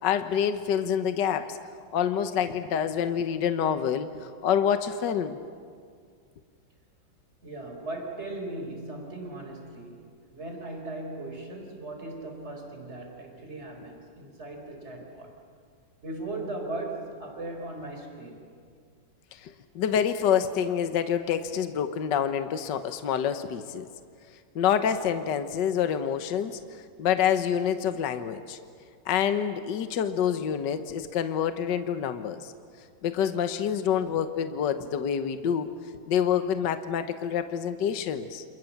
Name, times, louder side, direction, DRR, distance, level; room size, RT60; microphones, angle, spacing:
voice 1, 0.0-1.6 1.9-5.4 19.3-23.9 24.5-28.6 29.1-32.5 33.0-35.7 36.1-38.4, left 8 dB, 65° left, 9 dB, 1.6 m, -27 dB
voice 2, 7.4-15.4 16.0-18.5, right 2 dB, 30° right, 3 dB, 4.6 m, -38 dB
29.0 x 27.5 x 7.3 m, 2.1 s
omnidirectional pair, 2.2 m